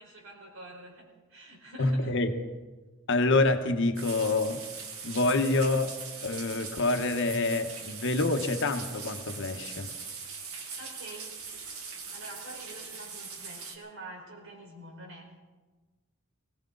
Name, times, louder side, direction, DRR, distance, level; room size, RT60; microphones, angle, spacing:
voice 1, 0.0-2.1 10.8-11.3 12.1-15.4, right 1 dB, 65° right, -1 dB, 4.4 m, -46 dB
voice 2, 1.8-2.3 3.1-4.6 5.0-5.9 6.2-9.9, left 2 dB, 60° left, 6 dB, 1.1 m, -27 dB
sound 1, 4.0-13.8, right 5 dB, 90° right, 1.8 m, -41 dB
21.0 x 17.0 x 3.9 m, 1.3 s
head